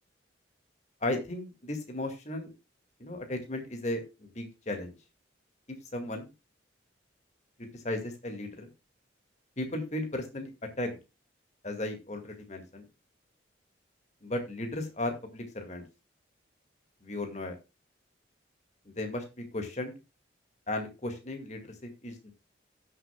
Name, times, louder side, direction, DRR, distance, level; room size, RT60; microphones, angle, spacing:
voice 1, 1.0-2.5 3.0-4.9 5.7-6.3 7.7-8.7 9.6-10.5 10.8-11.0 11.6-12.9 14.2-15.8 17.0-17.6 18.9-19.9 20.7-22.3, left 1 dB, 40° left, 4 dB, 2.1 m, -35 dB
16.5 x 6.7 x 2.3 m, 0.27 s
head